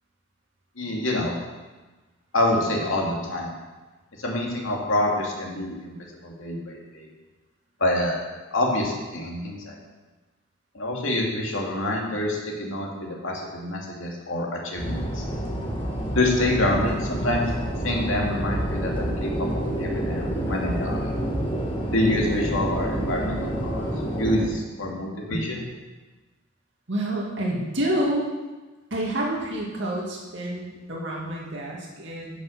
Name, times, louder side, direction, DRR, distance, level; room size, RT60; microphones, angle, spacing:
voice 1, 0.8-1.3 2.3-3.5 4.2-6.0 6.2-7.1 7.8-8.2 8.5-9.8 10.7-15.2 16.1-17.4 17.8-21.1 21.9-23.9 24.2-25.6, left 1 dB, 85° left, -1 dB, 2.3 m, -26 dB
sound 1, 14.8-24.5, right 1 dB, 25° left, 1.8 m, -28 dB
voice 2, 26.9-28.3 28.9-32.4, right 1 dB, 65° right, -3 dB, 2.4 m, -28 dB
10.5 x 6.4 x 6.4 m, 1.2 s
head